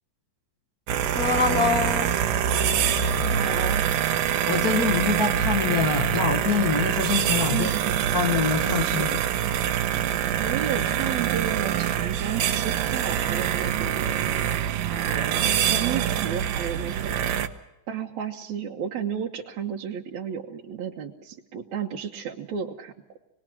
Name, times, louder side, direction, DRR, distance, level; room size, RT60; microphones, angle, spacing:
sound 1, 0.9-17.5, right 9 dB, 75° right, 2.8 m, -25 dB
voice 1, 1.1-2.1 4.5-7.7 8.1-9.2, left 5 dB, 75° left, 4 dB, 0.8 m, -25 dB
voice 2, 3.2-3.9 7.4-7.9 8.6-9.2 10.4-14.2 14.9-17.4 17.9-22.9, right 8 dB, 60° right, -2 dB, 2.4 m, -33 dB
27.5 x 20.5 x 6.2 m, 0.88 s
omnidirectional pair, 4.0 m